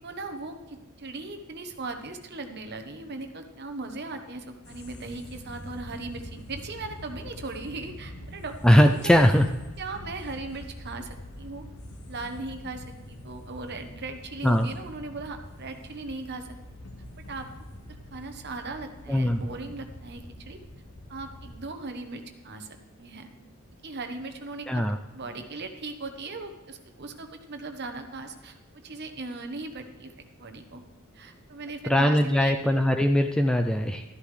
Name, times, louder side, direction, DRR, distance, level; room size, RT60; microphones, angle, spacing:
voice 1, 0.0-8.6 9.8-11.6 12.1-16.6 17.2-17.5 18.1-20.6 21.1-23.3 23.8-24.9 25.1-28.6 28.8-30.1 30.4-30.8 31.1-32.6, right 3 dB, 50° right, 6 dB, 1.0 m, -38 dB
sound 1, 4.6-21.6, left 1 dB, 75° left, 1.2 m, -44 dB
voice 2, 8.6-9.5 14.4-14.7 19.1-19.4 24.7-25.0 31.9-34.0, equal, 5° left, 5 dB, 0.3 m, -20 dB
12.5 x 11.5 x 3.3 m, 1.2 s
head